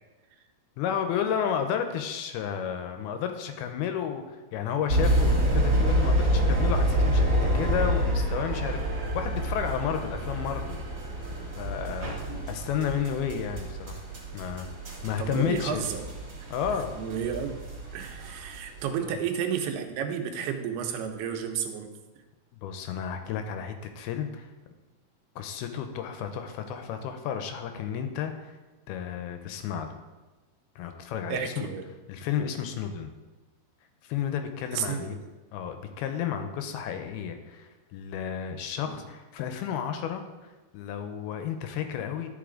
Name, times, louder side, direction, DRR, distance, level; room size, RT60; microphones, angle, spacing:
voice 1, 0.8-10.8 11.6-12.1 12.5-14.0 14.3-14.7 15.0-15.9 16.5-16.9 19.0-19.1 22.6-24.5 25.4-28.6 28.9-30.0 30.8-31.7 32.1-33.1 34.0-35.2 35.5-42.3, left 8 dB, 85° left, 7 dB, 2.6 m, -32 dB
sound 1, 4.9-18.8, equal, 40° right, 1.7 m, -27 dB
voice 2, 15.2-16.1 16.9-17.6 17.9-21.9 31.3-31.8 34.7-35.2 38.8-39.0, right 8 dB, 90° right, 5 dB, 2.8 m, -32 dB
12.0 x 5.5 x 3.8 m, 1.2 s
omnidirectional pair, 4.5 m